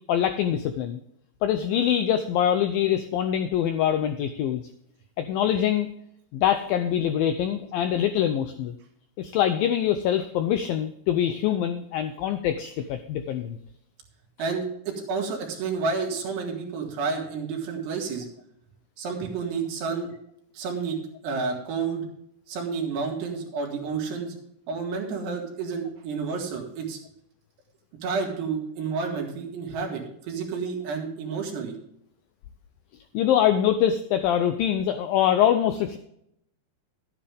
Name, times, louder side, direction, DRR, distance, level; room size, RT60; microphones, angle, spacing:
voice 1, 0.1-1.0 1.4-4.7 5.2-5.9 6.3-8.7 9.2-13.6 33.1-36.0, left 10 dB, 85° left, 8 dB, 2.0 m, -24 dB
voice 2, 14.4-18.3 19.0-20.1 20.5-21.0 21.2-22.1 22.5-24.3 24.7-27.0 28.0-31.7, right 5 dB, 75° right, 1 dB, 4.1 m, -30 dB
12.0 x 9.9 x 3.5 m, 0.74 s
omnidirectional pair, 4.9 m